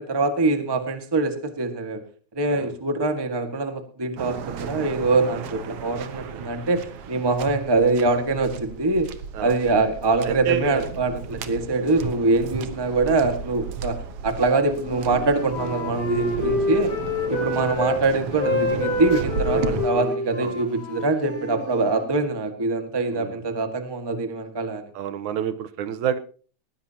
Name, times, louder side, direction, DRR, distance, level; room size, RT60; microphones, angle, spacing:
voice 1, 0.0-2.0 2.3-9.1 9.4-16.9 17.3-24.8, right 3 dB, 15° right, 7 dB, 1.0 m, -24 dB
Waves surf, 4.2-19.9, right 6 dB, 60° right, 1.9 m, -34 dB
voice 2, 10.2-10.9 12.6-12.7 16.4-16.8 19.5-20.6 23.1-23.4 24.9-26.2, right 9 dB, 85° right, 13 dB, 2.4 m, -30 dB
Wind instrument woodwind instrument, 14.7-18.0 18.3-22.1, left 2 dB, 55° left, 6.1 m, -28 dB
19.5 x 16.0 x 2.9 m, 0.40 s
omnidirectional pair, 3.4 m